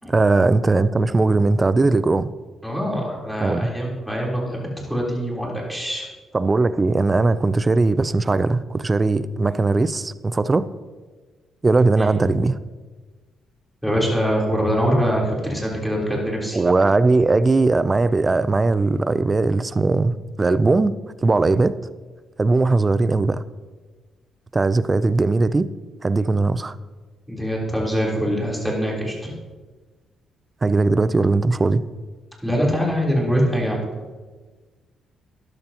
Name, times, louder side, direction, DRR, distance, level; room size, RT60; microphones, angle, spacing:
voice 1, 0.1-2.3 3.4-3.7 6.3-10.7 11.6-12.6 16.5-20.9 21.2-21.8 22.4-23.4 24.5-25.7 26.0-26.7 30.6-31.8, right 3 dB, 25° right, 0.5 m, -19 dB
voice 2, 2.6-6.0 12.0-12.1 13.8-16.6 27.3-29.3 32.4-33.9, equal, ahead, 3.6 m, -23 dB
13.0 x 11.0 x 2.9 m
cardioid pair, 90°, 0 cm